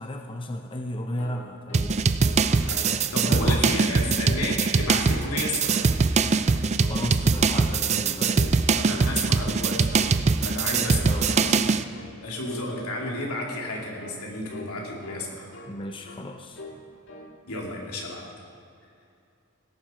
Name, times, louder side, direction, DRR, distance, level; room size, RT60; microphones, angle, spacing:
voice 1, 0.0-2.1 3.3-3.8 6.6-8.4 11.0-11.7 15.7-16.6, left 1 dB, 25° left, 3 dB, 0.7 m, -34 dB
sound 1, 1.2-2.5 2.7-3.0 3.2-3.9 4.2-5.0 5.3-6.0 6.3-6.5 6.8-7.6 7.8-8.1 8.3-8.6 8.9-9.6 9.9-10.1 10.4-10.6 10.9-11.2 11.4-11.7 11.9-12.2 12.4-12.7 12.9-13.2 13.5-13.7 14.0-14.2 14.5-14.7 15.0-16.3 16.5-16.8 17.1-17.3, left 1 dB, 60° left, 1.8 m, -43 dB
sound 2, 1.7-11.8, right 4 dB, 30° right, 0.4 m, -22 dB
voice 2, 3.1-5.8 8.2-8.3 8.7-10.1 10.4-11.7 12.2-15.5 17.5-18.2, left 1 dB, 85° left, -2 dB, 2.8 m, -32 dB
18.5 x 10.5 x 4.4 m, 2.5 s
head